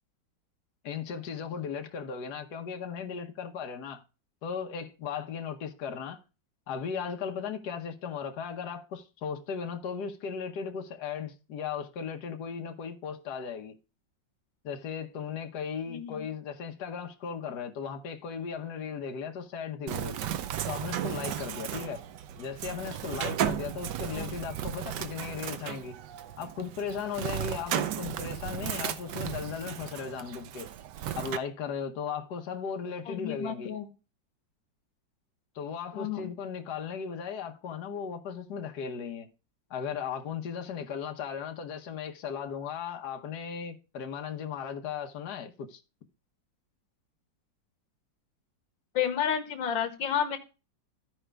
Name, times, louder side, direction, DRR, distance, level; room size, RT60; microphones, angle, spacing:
voice 1, 0.8-4.0 4.4-6.2 6.7-13.8 14.6-20.2 20.7-22.0 22.4-26.0 26.4-30.7 31.1-33.7 35.5-39.3 39.7-45.8, left 6 dB, 60° left, 1.6 m, -36 dB
voice 2, 15.9-16.3 24.1-24.3 33.1-33.9 35.9-36.3 48.9-50.4, left 9 dB, 85° left, 1.8 m, -31 dB
Bird, 19.9-31.4, right 10 dB, 70° right, 1.3 m, -35 dB
14.5 x 5.0 x 3.3 m
omnidirectional pair, 2.0 m